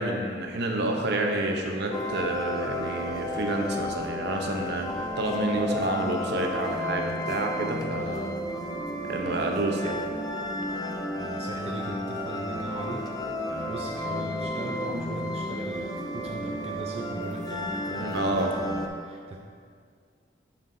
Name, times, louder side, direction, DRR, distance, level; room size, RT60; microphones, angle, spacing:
voice 1, 0.0-4.9 5.2-8.3 9.1-10.0 18.0-18.5, right 1 dB, 60° right, 2 dB, 0.7 m, -29 dB
sound 1, 1.9-18.9, left 1 dB, 20° left, 0.4 m, -32 dB
voice 2, 11.0-19.4, right 1 dB, 35° right, -1 dB, 0.5 m, -38 dB
7.3 x 7.2 x 2.7 m, 2.1 s
head